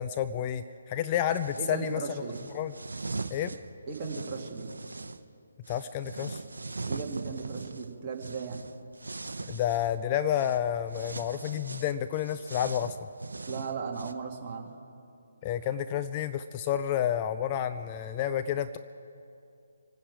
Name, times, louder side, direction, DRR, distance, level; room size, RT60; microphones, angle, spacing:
voice 1, 0.0-2.0 2.5-2.7 3.3-3.6 5.7-6.4 9.5-13.0 15.4-18.8, left 10 dB, 25° left, 10 dB, 0.4 m, -30 dB
sound 1, 1.3-1.8 2.3-5.2 5.6-9.9 10.3-10.6 10.9-14.1, right 3 dB, 70° right, 0.8 m, -40 dB
voice 2, 1.6-2.4 3.9-4.7 6.9-8.6 13.5-14.7, right 5 dB, 25° right, -1 dB, 2.0 m, -36 dB
26.0 x 10.0 x 4.8 m, 2.5 s
figure-of-eight pair, 145°, 0 cm